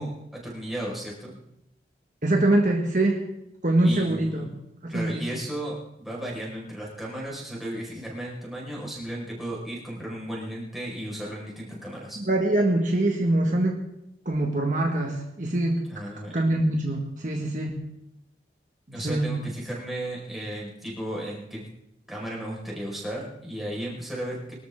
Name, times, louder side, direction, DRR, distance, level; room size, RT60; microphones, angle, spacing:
voice 1, 0.0-1.4 3.8-4.6 4.9-12.2 15.9-16.5 18.9-21.7 22.1-24.5, right 1 dB, ahead, -5 dB, 5.1 m, -35 dB
voice 2, 2.2-3.2 3.6-4.5 4.8-5.2 12.2-13.8 14.2-15.8 16.3-17.8 18.9-19.3, right 1 dB, 45° right, 0 dB, 1.8 m, -24 dB
23.5 x 13.5 x 3.7 m, 0.81 s
head